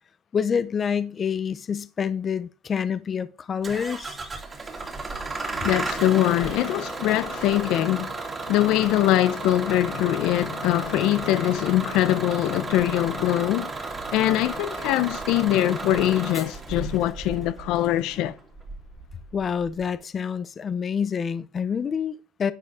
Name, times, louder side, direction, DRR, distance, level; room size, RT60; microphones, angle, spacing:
voice 1, 0.3-4.2 19.3-22.5, left 7 dB, 25° left, 0.6 m, -27 dB
Bus / Engine starting, 3.6-19.8, right 3 dB, 15° right, 2.2 m, -34 dB
voice 2, 5.6-8.1 8.5-13.7 14.1-18.3, left 14 dB, 60° left, 0.7 m, -23 dB
11.0 x 9.6 x 3.6 m
cardioid pair, 165°, 0 cm